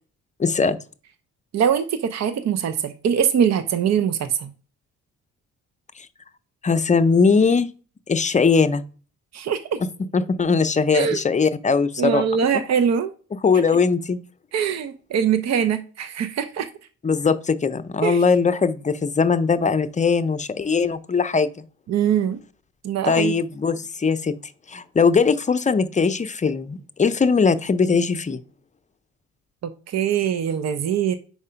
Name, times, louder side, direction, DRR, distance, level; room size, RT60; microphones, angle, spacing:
voice 1, 0.4-0.8 6.0-6.1 6.6-7.7 8.1-8.8 10.1-12.2 13.4-14.2 17.0-21.6 23.0-24.3 24.7-28.4, left 5 dB, 25° left, 0.5 m, -20 dB
voice 2, 1.5-4.5 9.3-9.8 10.9-11.2 12.0-13.1 14.5-16.7 18.0-18.2 21.9-22.4 22.8-23.3 29.6-31.2, right 8 dB, 60° right, 0.7 m, -22 dB
4.8 x 4.3 x 5.6 m
cardioid pair, 90°, 30 cm